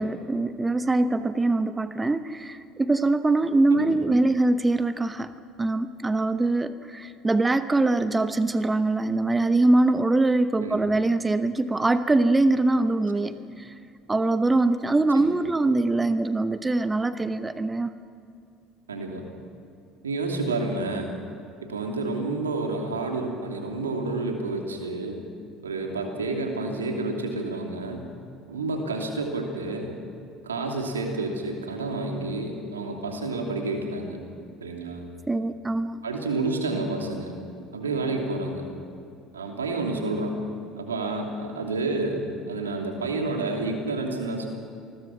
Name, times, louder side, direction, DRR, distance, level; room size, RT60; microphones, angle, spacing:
voice 1, 0.0-5.3 5.6-13.7 14.1-17.9 35.3-36.0, right 2 dB, 15° right, 11 dB, 1.0 m, -23 dB
voice 2, 18.9-19.3 20.0-21.1 21.6-25.2 25.6-28.0 28.5-29.9 30.4-34.2 34.6-35.0 36.0-37.3 37.7-38.7 39.3-40.4 40.8-44.5, right 2 dB, 85° right, 2 dB, 3.0 m, -29 dB
28.0 x 20.5 x 6.1 m, 2.5 s
figure-of-eight pair, 65°, 0 cm